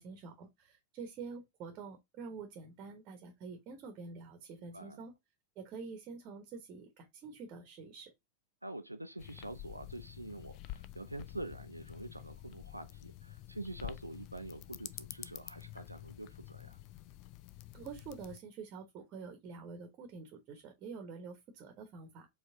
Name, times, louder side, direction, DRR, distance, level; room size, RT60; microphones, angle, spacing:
voice 1, 0.0-5.1 5.5-8.1 17.7-22.3, right 5 dB, 35° right, 1.0 m, -47 dB
voice 2, 8.6-16.8, right 1 dB, 85° right, 0.4 m, -46 dB
sound 1, 9.2-18.4, left 14 dB, 40° left, 0.3 m, -49 dB
4.7 x 3.3 x 2.7 m
figure-of-eight pair, 90°, 0 cm